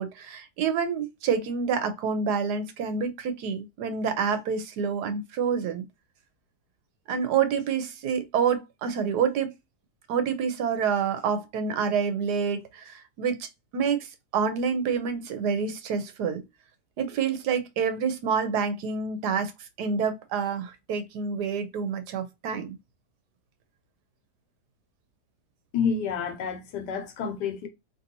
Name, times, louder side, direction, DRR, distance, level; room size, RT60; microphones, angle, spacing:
voice 1, 0.0-5.8 7.1-9.5 10.1-13.5 13.7-16.4 17.0-19.5 19.8-22.8, right 6 dB, 80° right, 1.3 m, -27 dB
voice 2, 25.7-27.7, left 6 dB, 90° left, 1.4 m, -29 dB
3.2 x 2.7 x 2.7 m
omnidirectional pair, 1.8 m